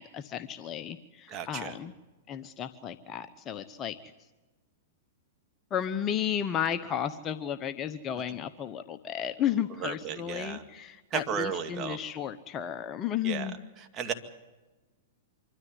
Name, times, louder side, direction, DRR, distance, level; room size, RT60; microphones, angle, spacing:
voice 1, 0.0-1.9 2.3-4.1 5.7-13.6, left 9 dB, 30° left, 10 dB, 0.9 m, -33 dB
voice 2, 1.3-1.8 9.8-10.6 11.1-12.0 13.2-13.5 13.9-14.1, right 7 dB, 30° right, 5 dB, 2.1 m, -34 dB
25.0 x 13.0 x 9.6 m, 1.1 s
hypercardioid pair, 115°, 0 cm